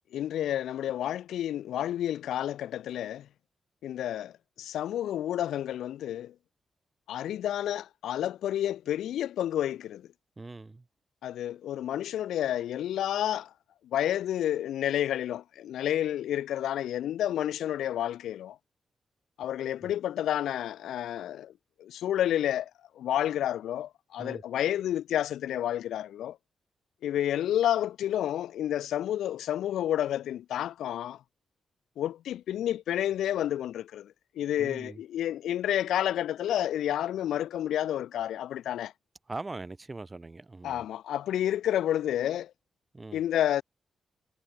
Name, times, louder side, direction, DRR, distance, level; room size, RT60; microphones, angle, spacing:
voice 1, 0.1-3.3 3.8-6.3 7.1-10.1 11.2-13.5 13.9-18.6 19.4-21.5 21.8-22.7 23.0-26.4 27.0-31.2 32.0-38.9 40.6-42.5 43.1-43.6, left 11 dB, 85° left, 0.4 m, -30 dB
voice 2, 10.4-10.8 19.8-19.9 24.2-24.4 34.6-35.0 39.3-40.8 42.9-43.2, right 3 dB, 30° right, 1.6 m, -41 dB
supercardioid pair, 55°, 0 cm